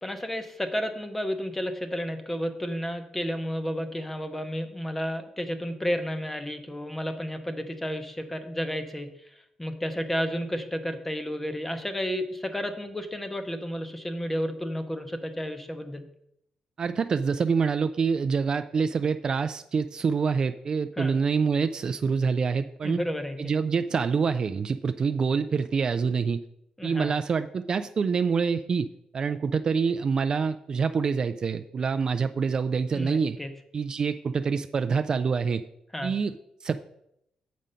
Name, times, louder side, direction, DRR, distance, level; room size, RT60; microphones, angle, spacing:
voice 1, 0.0-16.0 21.0-21.1 22.8-23.4 26.8-27.1 32.9-33.5 35.9-36.1, equal, 10° left, 8 dB, 0.8 m, -32 dB
voice 2, 16.8-23.0 23.4-26.4 26.8-28.9 29.1-33.4 33.7-35.6 36.0-36.3 36.6-36.8, right 5 dB, 40° right, 9 dB, 0.3 m, -26 dB
7.5 x 5.1 x 5.5 m, 0.78 s
cardioid pair, 140°, 2 cm